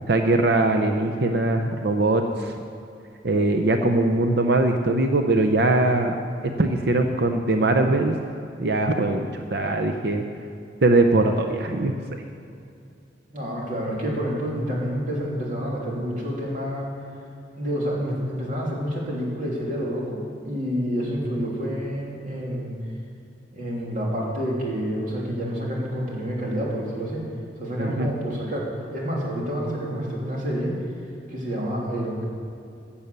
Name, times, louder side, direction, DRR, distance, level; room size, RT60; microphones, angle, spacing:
voice 1, 0.1-2.6 3.2-6.2 6.6-8.2 8.6-10.2 10.8-11.9 27.8-28.1, right 2 dB, 60° right, 5 dB, 0.7 m, -21 dB
voice 2, 13.3-16.9 17.6-22.7 23.5-27.2 27.6-30.8 31.3-32.2, equal, 45° right, -4 dB, 3.0 m, -28 dB
15.5 x 7.2 x 6.9 m, 2.5 s
head